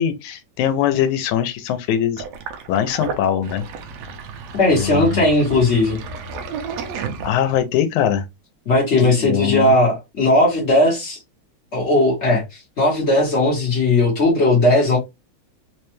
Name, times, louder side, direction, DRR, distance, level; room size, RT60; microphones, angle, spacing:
voice 1, 0.0-2.2 2.7-3.6 4.7-5.3 7.2-8.3 9.0-9.8, left 9 dB, 90° left, 2.0 m, -21 dB
Sink (filling or washing), 2.2-7.7, right 5 dB, 75° right, 1.6 m, -32 dB
voice 2, 4.5-6.0 8.7-11.2 11.7-12.4 12.8-15.0, left 2 dB, 70° left, 0.6 m, -17 dB
4.9 x 2.2 x 3.0 m
omnidirectional pair, 3.4 m